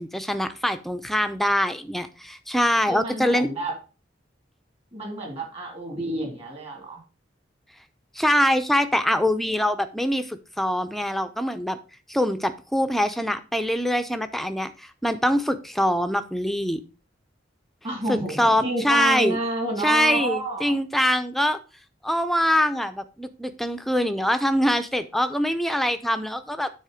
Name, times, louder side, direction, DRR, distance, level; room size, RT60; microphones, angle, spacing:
voice 1, 0.0-3.5 8.2-11.8 12.1-16.8 18.1-19.4 19.8-21.6 22.0-26.7, equal, ahead, 9 dB, 0.6 m, -24 dB
voice 2, 2.9-3.7 4.9-7.0 17.8-20.7, right 2 dB, 35° right, 2 dB, 2.7 m, -29 dB
9.5 x 4.0 x 5.0 m, 0.33 s
head